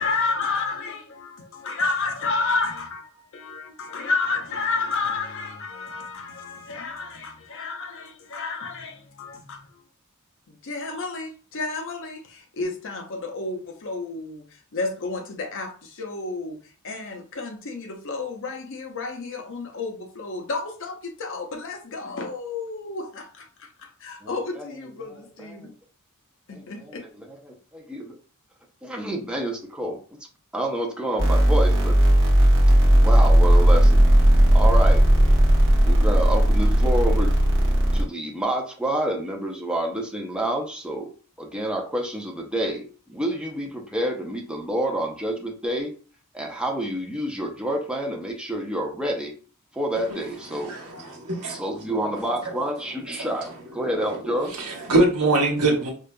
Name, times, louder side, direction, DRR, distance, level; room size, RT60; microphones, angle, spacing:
voice 1, 0.0-9.7 10.5-14.4 14.7-16.6 16.8-25.7 26.5-27.0, left 3 dB, 60° left, 0.7 m, -31 dB
voice 2, 24.2-24.7 25.1-25.7 26.5-28.2 28.8-30.2 30.5-32.0 33.0-34.0 34.5-35.1 35.8-37.3 37.9-41.1 41.4-45.9 46.3-49.3 49.7-50.7 51.4-54.5, right 1 dB, 5° right, 0.7 m, -28 dB
sound 1, 31.2-38.0, right 1 dB, 60° right, 1.0 m, -16 dB
voice 3, 50.5-51.6 53.2-53.3 54.1-54.2 54.6-55.9, right 2 dB, 85° right, 1.0 m, -23 dB
4.9 x 2.5 x 2.2 m
head